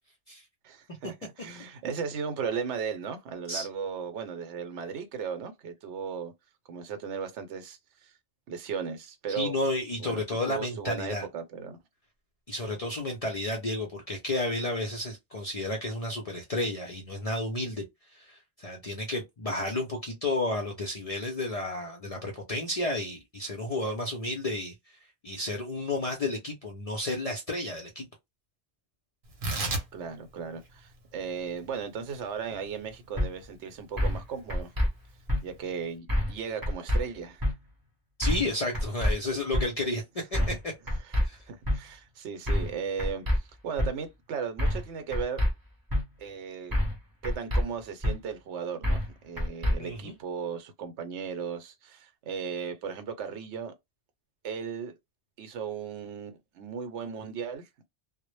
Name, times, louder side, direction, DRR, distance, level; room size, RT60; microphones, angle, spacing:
voice 1, 0.6-6.3 6.7-8.1 8.5-9.6 10.0-11.8 29.9-34.7 35.4-37.4 40.4-40.5 41.0-41.2 41.5-45.4 46.2-46.8 47.2-53.7 54.4-55.0 55.4-57.7, right 6 dB, 80° right, 0.9 m, -36 dB
voice 2, 9.3-11.3 12.5-17.8 18.1-24.7 25.2-28.1 38.2-40.6 41.2-41.4 49.8-50.2, left 2 dB, 55° left, 0.4 m, -32 dB
Tearing, 29.2-36.0, right 2 dB, 55° right, 0.8 m, -39 dB
sound 1, 33.2-33.3 34.0-34.2 34.5-34.9 35.3-35.4 36.1-36.4 36.6-37.0 37.4-37.5 38.2-38.5 38.7-39.1 39.5-39.7 40.3-40.6 40.9-41.2 41.6-41.8 42.5-42.7 43.0-43.4 43.8-43.9 44.6-44.9 45.1-45.5 45.9-46.0 46.7-47.0 47.2-47.6 48.0-48.1 48.8-49.1 49.4-49.7, left 1 dB, 25° right, 0.6 m, -26 dB
2.0 x 2.0 x 3.0 m
omnidirectional pair, 1.2 m